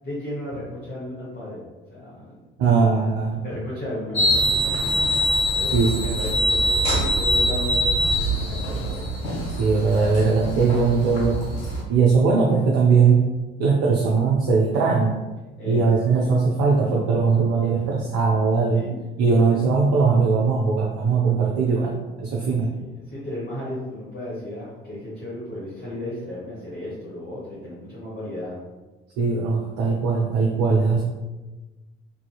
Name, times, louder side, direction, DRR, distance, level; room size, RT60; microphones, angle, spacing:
voice 1, 0.0-1.6 1.9-2.8 3.4-5.2 5.5-9.0 15.6-16.3 18.7-19.0 19.5-19.6 22.8-28.6, left 1 dB, 35° left, -9 dB, 1.0 m, -34 dB
voice 2, 2.6-3.4 5.7-6.1 9.5-11.5 11.9-13.2 13.6-15.2 15.6-18.8 19.2-22.7 29.2-31.0, right 4 dB, 55° right, -1 dB, 0.4 m, -20 dB
sound 1, 4.1-11.8, equal, 75° left, 0.7 m, -23 dB
2.6 x 2.4 x 2.3 m, 1.2 s
figure-of-eight pair, 50°, 29 cm